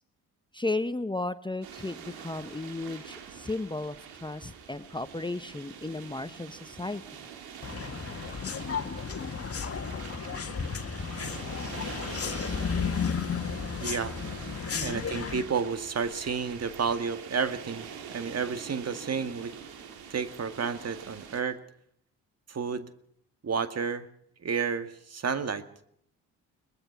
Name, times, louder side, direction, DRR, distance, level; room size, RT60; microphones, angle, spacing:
voice 1, 0.5-7.0 14.7-15.1, left 2 dB, 15° left, 12 dB, 1.0 m, -34 dB
sound 1, 1.6-21.4, right 7 dB, 85° right, 3.3 m, -45 dB
sound 2, 7.6-15.4, left 6 dB, 40° left, 1.9 m, -33 dB
voice 2, 13.8-14.2 14.8-19.5 20.1-21.6 22.5-22.9 23.4-24.1 24.4-25.7, right 5 dB, 45° right, 11 dB, 2.1 m, -31 dB
22.5 x 20.0 x 5.9 m, 0.65 s
supercardioid pair, 60°, 36 cm